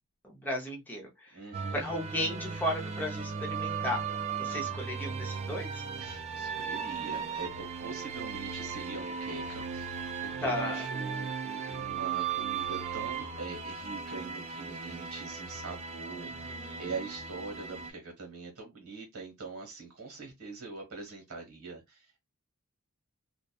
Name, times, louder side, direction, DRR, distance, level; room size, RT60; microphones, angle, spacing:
voice 1, 0.2-1.4 1.7-4.0 4.4-5.8 10.4-10.8 16.2-16.9, left 1 dB, 10° left, 0.6 m, -35 dB
voice 2, 1.3-1.8 6.0-22.2, right 4 dB, 85° right, 1.3 m, -43 dB
sound 1, 1.5-17.9, right 6 dB, 30° right, 0.3 m, -37 dB
2.6 x 2.2 x 2.3 m
head